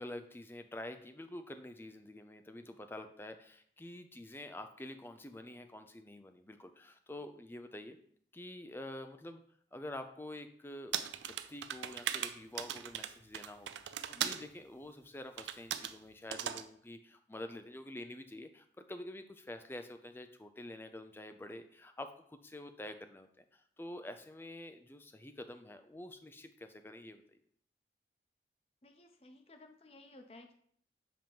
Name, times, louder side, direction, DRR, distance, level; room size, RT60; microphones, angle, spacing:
voice 1, 0.0-8.0 8.3-9.4 9.7-27.2, left 1 dB, 15° left, 8 dB, 0.4 m, -47 dB
Typing on Computer Keyboard, 10.9-14.4 15.4-15.9 16.3-16.6, right 10 dB, 90° right, 0.4 m, -38 dB
voice 2, 28.8-30.5, left 2 dB, 35° left, 5 dB, 0.7 m, -56 dB
7.6 x 3.0 x 5.2 m, 0.63 s
head